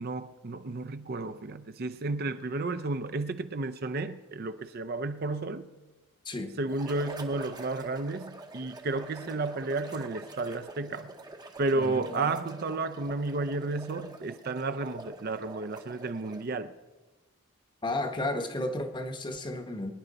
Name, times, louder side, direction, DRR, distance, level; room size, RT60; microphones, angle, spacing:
voice 1, 0.0-5.7 6.6-11.1 11.6-16.7, right 3 dB, 45° right, 0.5 m, -32 dB
sound 1, 6.7-16.6, right 2 dB, 20° right, 0.8 m, -45 dB
voice 2, 11.8-12.3 17.8-19.9, left 2 dB, 20° left, 1.0 m, -33 dB
23.0 x 10.0 x 4.1 m
head